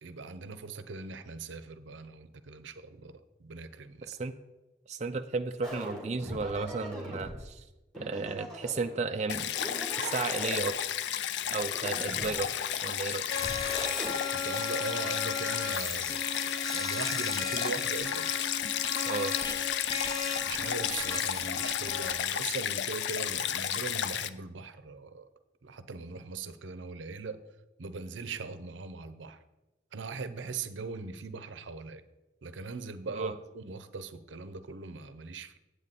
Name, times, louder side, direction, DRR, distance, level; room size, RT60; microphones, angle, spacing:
voice 1, 0.0-4.1 14.3-18.3 20.4-25.3 25.6-27.4 27.8-29.4 29.9-32.0 32.4-35.6, right 4 dB, 85° right, 0.6 m, -40 dB
voice 2, 4.9-7.6 8.0-9.5 10.0-10.8 11.5-12.5 12.8-13.2 19.0-19.4 33.1-33.3, right 4 dB, 35° right, 0.4 m, -33 dB
sound 1, 5.6-7.4 7.9-9.0 9.5-10.7 11.4-12.7 13.3-14.1, equal, 5° left, 2.0 m, -41 dB
Stream, 9.3-24.3, left 10 dB, 70° left, 0.4 m, -32 dB
sound 2, 13.3-22.1, left 4 dB, 20° left, 0.7 m, -37 dB
8.9 x 8.2 x 4.1 m
head